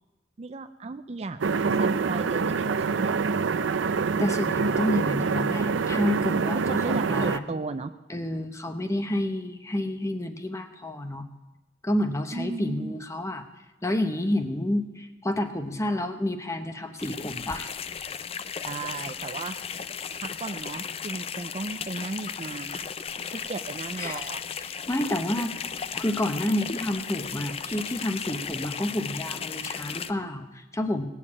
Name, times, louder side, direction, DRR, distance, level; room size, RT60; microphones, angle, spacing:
voice 1, 0.4-3.1 6.7-8.0 12.3-12.9 18.6-19.6 20.2-22.8 23.3-24.4, right 3 dB, 35° right, 9 dB, 0.4 m, -35 dB
sound 1, 1.4-7.4, right 5 dB, 85° right, 0.5 m, -25 dB
voice 2, 4.2-7.6 8.1-11.3 11.8-13.5 13.8-17.7 24.0-24.3 24.6-25.5 25.9-31.1, left 1 dB, 15° left, 7 dB, 0.9 m, -29 dB
sound 2, 17.0-30.1, left 7 dB, 30° left, 0.4 m, -35 dB
18.0 x 7.2 x 8.5 m, 1.1 s
head